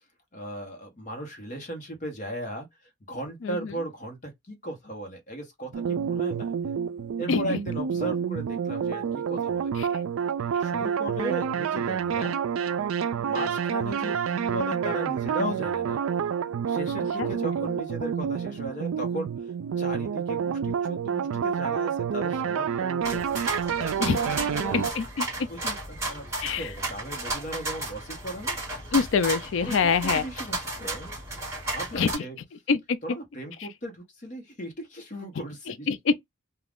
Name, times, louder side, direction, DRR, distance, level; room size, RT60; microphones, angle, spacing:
voice 1, 0.3-2.7 3.1-6.5 7.2-9.7 10.6-12.4 13.2-16.0 16.7-19.3 19.8-23.6 24.4-24.8 25.5-28.6 29.6-31.4 31.7-32.4 33.0-35.9, right 1 dB, 35° left, 0.9 m, -36 dB
sound 1, 5.7-24.9, right 7 dB, 70° right, 0.3 m, -28 dB
sound 2, 23.0-32.2, right 2 dB, 10° right, 1.3 m, -33 dB
voice 2, 24.7-25.3 26.4-26.6 28.9-30.2 31.9-32.2 32.7-33.0 35.9-36.1, left 5 dB, 55° left, 0.4 m, -24 dB
2.4 x 2.2 x 3.4 m
head